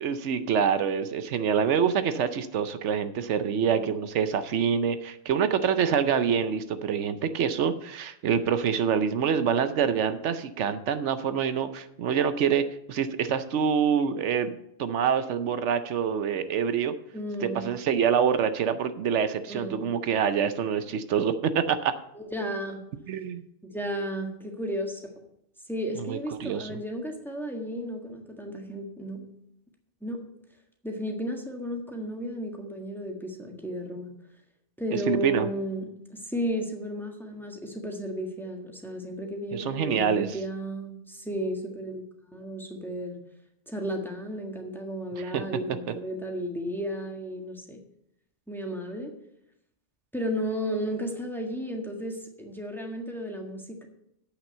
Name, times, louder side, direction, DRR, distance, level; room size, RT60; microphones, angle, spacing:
voice 1, 0.0-14.5 14.8-16.9 17.4-21.9 23.1-23.4 26.1-26.8 34.9-35.5 39.5-40.4 45.2-45.4, right 7 dB, 80° right, 11 dB, 1.0 m, -26 dB
voice 2, 17.1-17.7 19.5-19.9 22.1-22.8 23.6-25.2 25.7-29.3 30.0-30.2 30.8-34.1 34.8-43.2 43.7-47.8 48.5-49.1 50.1-53.9, equal, ahead, 2 dB, 1.5 m, -33 dB
8.3 x 6.2 x 7.8 m, 0.78 s
omnidirectional pair, 1.2 m